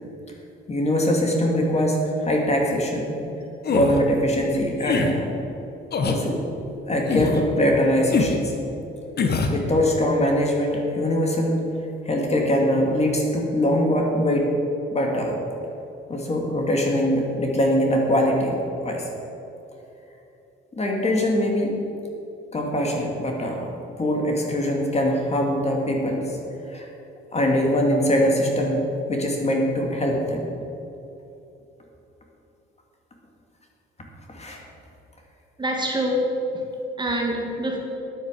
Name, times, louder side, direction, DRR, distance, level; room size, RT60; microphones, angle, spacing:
voice 1, 0.7-3.2 3.7-5.3 6.0-6.4 6.9-8.5 9.5-11.6 12.1-14.5 14.9-15.4 16.1-19.1 20.7-21.8 22.5-23.7 24.0-26.3 26.7-26.9 27.3-28.8 29.1-30.5 34.3-34.6, equal, 35° left, 0 dB, 2.5 m, -22 dB
sound 1, 3.6-4.0 4.8-5.1 5.9-6.2 7.1-7.4 8.1-8.4 9.2-9.6, left 5 dB, 55° left, 1.4 m, -23 dB
voice 2, 35.6-36.6 37.0-37.8, equal, 20° right, 0 dB, 2.2 m, -25 dB
10.0 x 8.9 x 7.6 m, 2.9 s
cardioid pair, 90°, 20 cm